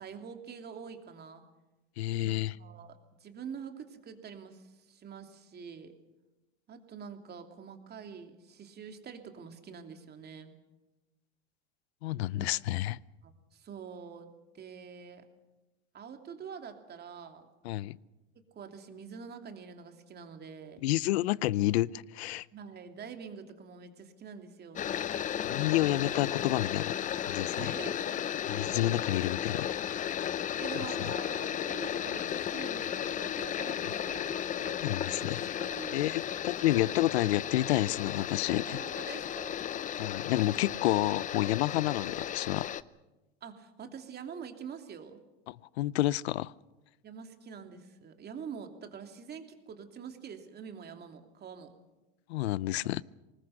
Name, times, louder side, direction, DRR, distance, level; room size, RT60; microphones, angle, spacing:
voice 1, 0.0-1.4 2.2-6.0 6.7-10.5 12.3-12.5 13.2-15.2 15.9-17.5 18.5-20.8 22.5-24.9 27.6-28.4 30.6-36.0 36.7-36.9 38.7-39.6 43.4-45.2 47.0-51.7, right 6 dB, 30° right, 5 dB, 2.9 m, -46 dB
voice 2, 2.0-2.6 12.0-13.0 17.6-18.0 20.8-22.5 25.5-27.0 27.3-27.7 28.5-29.7 30.8-31.1 34.8-35.4 35.9-38.8 40.0-42.7 45.5-46.5 52.3-53.0, left 15 dB, 75° left, 22 dB, 0.7 m, -29 dB
sound 1, 24.7-42.8, left 10 dB, 25° left, 0.6 m, -34 dB
24.5 x 20.0 x 6.6 m, 1.1 s
hypercardioid pair, 110°, 32 cm